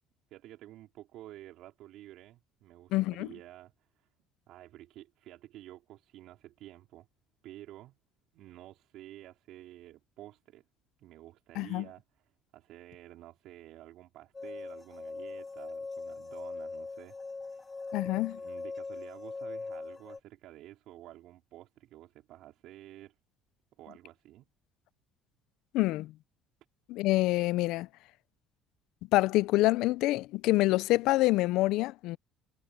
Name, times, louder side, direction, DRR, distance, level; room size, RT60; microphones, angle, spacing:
voice 1, 0.3-4.1 4.5-7.1 7.4-8.0 8.3-10.6 11.0-17.7 18.1-23.1 23.8-24.5, right 14 dB, 70° right, 4.7 m, -51 dB
voice 2, 2.9-3.3 11.6-11.8 17.9-18.4 25.7-26.1 26.9-27.9 29.1-32.2, left 18 dB, 75° left, 0.5 m, -26 dB
sound 1, 14.3-20.2, left 3 dB, 25° left, 1.9 m, -41 dB
supercardioid pair, 85°, 0 cm